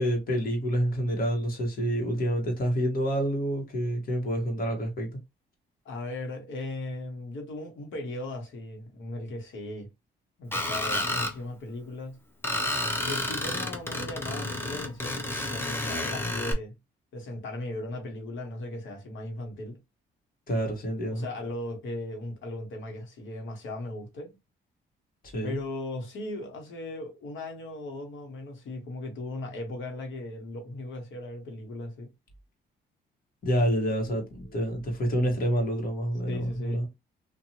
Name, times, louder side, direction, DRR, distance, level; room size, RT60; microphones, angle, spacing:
voice 1, 0.0-5.1 20.5-21.2 25.3-25.6 33.4-36.9, equal, 45° left, 1.3 m, -28 dB
voice 2, 5.8-9.9 10.4-12.2 13.0-16.7 17.1-19.8 21.1-24.3 25.4-32.1 34.4-34.6 36.3-36.9, left 2 dB, 75° left, 1.2 m, -37 dB
Screech, 10.5-11.3 12.4-16.5, left 1 dB, 10° left, 0.8 m, -30 dB
2.8 x 2.5 x 2.8 m
cardioid pair, 90°, 20 cm